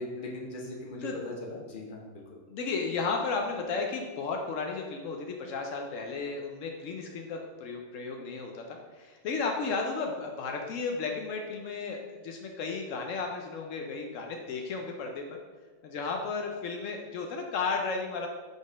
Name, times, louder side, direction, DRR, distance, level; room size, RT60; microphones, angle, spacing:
voice 1, 0.0-2.4, left 1 dB, 35° left, -1 dB, 0.9 m, -39 dB
voice 2, 2.5-15.2 15.8-18.3, left 4 dB, 85° left, 2 dB, 0.6 m, -34 dB
5.3 x 4.1 x 5.0 m, 1.4 s
omnidirectional pair, 2.1 m